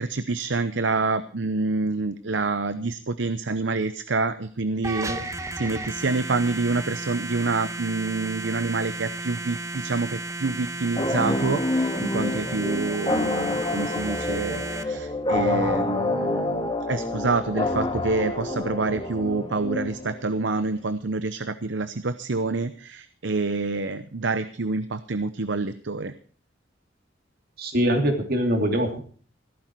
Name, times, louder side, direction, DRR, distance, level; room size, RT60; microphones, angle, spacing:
voice 1, 0.0-26.1, right 3 dB, 80° right, 12 dB, 0.8 m, -27 dB
sound 1, 4.8-14.8, right 2 dB, 15° right, 1.1 m, -34 dB
sound 2, 11.0-20.4, left 2 dB, 25° left, 1.7 m, -27 dB
voice 2, 27.6-29.0, equal, 55° right, 5 dB, 3.0 m, -23 dB
15.5 x 13.5 x 4.6 m, 0.43 s
head